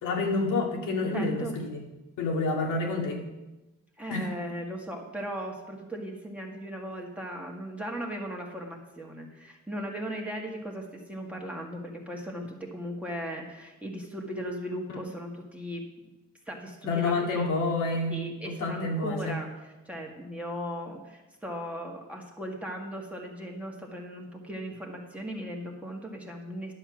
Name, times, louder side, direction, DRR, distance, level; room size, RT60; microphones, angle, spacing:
voice 1, 0.0-1.8 2.2-3.2 4.1-4.3 14.9-15.0 16.8-19.4, left 3 dB, 85° left, 1 dB, 2.3 m, -28 dB
voice 2, 1.1-1.6 4.0-15.8 16.4-17.5 18.1-26.7, equal, 5° right, -1 dB, 1.7 m, -37 dB
11.0 x 6.9 x 6.2 m, 1.1 s
cardioid pair, 90°, 30 cm